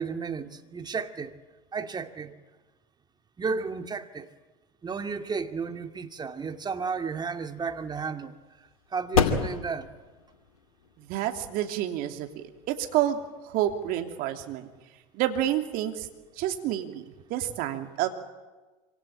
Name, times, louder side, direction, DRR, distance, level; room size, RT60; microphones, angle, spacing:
voice 1, 0.0-1.3 1.7-2.3 3.4-4.3 4.8-8.3 8.9-9.9, right 5 dB, 25° right, 2.2 m, -33 dB
sound 1, 6.8-13.8, left 5 dB, 90° left, 2.5 m, -33 dB
voice 2, 11.0-14.7 15.1-16.1 16.4-17.0 17.3-18.1, right 12 dB, 55° right, 3.0 m, -29 dB
26.0 x 25.5 x 8.9 m
hypercardioid pair, 80°, 17 cm